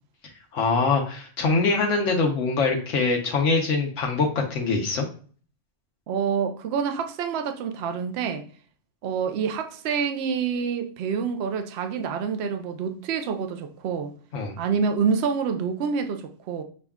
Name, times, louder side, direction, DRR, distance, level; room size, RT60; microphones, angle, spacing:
voice 1, 0.5-5.0 14.3-14.5, left 4 dB, 90° left, 1.2 m, -23 dB
voice 2, 6.1-8.4 9.0-14.1 14.6-16.6, right 6 dB, 65° right, 0.8 m, -27 dB
6.2 x 2.3 x 3.5 m
omnidirectional pair, 1.2 m